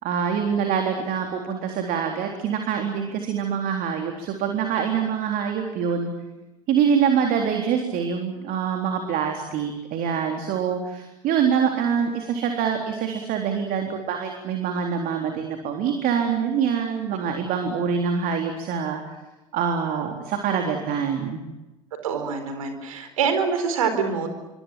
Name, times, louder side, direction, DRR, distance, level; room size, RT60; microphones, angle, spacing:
voice 1, 0.0-6.1 6.7-19.0 19.5-21.4, right 7 dB, 55° right, 4 dB, 3.9 m, -25 dB
voice 2, 22.0-24.3, right 6 dB, 80° right, 8 dB, 4.5 m, -25 dB
27.0 x 25.0 x 7.7 m, 1.1 s
hypercardioid pair, 70°, 18 cm